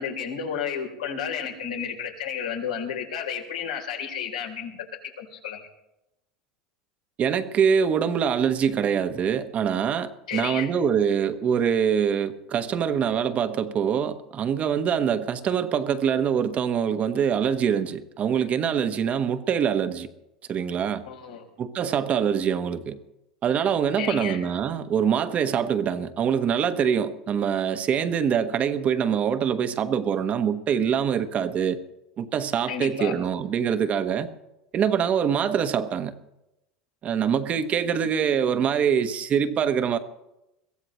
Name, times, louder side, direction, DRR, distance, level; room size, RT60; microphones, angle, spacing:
voice 1, 0.0-4.8 5.2-5.7 10.3-10.7 21.0-21.5 24.0-24.4 32.7-33.1, left 7 dB, 90° left, 3.4 m, -32 dB
voice 2, 7.2-20.1 20.5-21.0 21.6-23.0 23.4-31.8 32.2-34.3 34.7-36.1 37.0-40.0, right 7 dB, 40° right, 1.1 m, -24 dB
22.5 x 15.5 x 3.2 m
hypercardioid pair, 95°, 4 cm